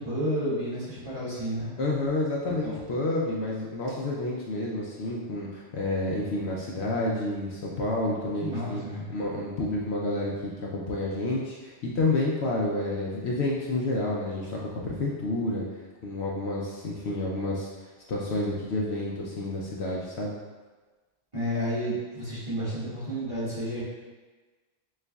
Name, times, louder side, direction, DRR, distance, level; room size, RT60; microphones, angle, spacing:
voice 1, 0.0-1.7 2.6-2.8 8.4-9.1 21.3-23.8, equal, 25° right, -12 dB, 1.6 m, -31 dB
voice 2, 1.8-8.8 9.1-14.6 14.8-15.6 16.0-17.7 18.1-20.4, left 2 dB, 65° left, -3 dB, 0.8 m, -29 dB
6.3 x 2.5 x 2.3 m, 1.3 s
omnidirectional pair, 1.3 m